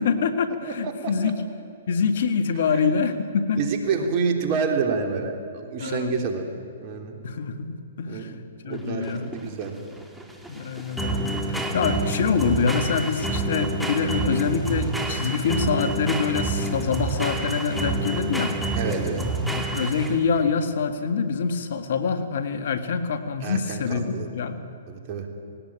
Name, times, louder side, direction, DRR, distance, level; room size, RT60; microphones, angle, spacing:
voice 1, 0.0-1.4 1.9-3.9 5.8-6.1 7.2-8.3 8.6-9.5 10.5-18.5 19.4-24.6, left 5 dB, 65° left, 9 dB, 1.8 m, -25 dB
voice 2, 0.6-1.3 2.7-2.8 3.6-6.5 6.8-7.2 8.1-8.4 8.6-9.8 18.8-19.2 23.4-24.3 24.9-25.3, right 5 dB, 40° right, 4 dB, 3.4 m, -28 dB
sound 1, 8.7-20.4, right 2 dB, 5° right, 2.3 m, -28 dB
19.5 x 18.0 x 8.9 m, 2.6 s
hypercardioid pair, 125°, 0 cm